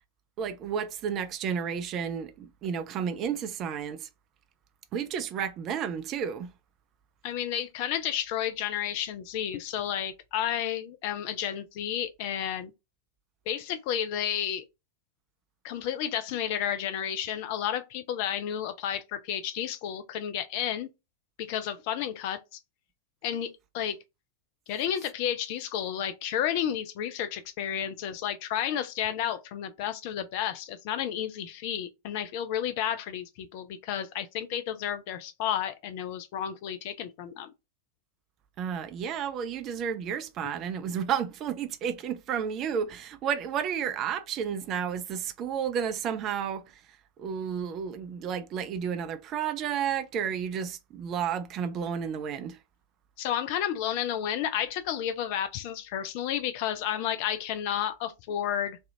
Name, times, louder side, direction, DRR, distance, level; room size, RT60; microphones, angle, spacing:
voice 1, 0.4-4.1 4.9-6.5 38.6-46.7 47.2-52.6, right 8 dB, 35° right, 0.4 m, -32 dB
voice 2, 7.2-12.7 13.5-14.6 15.6-20.9 21.4-22.6 23.2-24.0 24.7-37.5 40.4-40.5 53.2-58.8, left 10 dB, 45° left, 0.4 m, -31 dB
3.2 x 2.4 x 2.7 m
figure-of-eight pair, 90°, 0 cm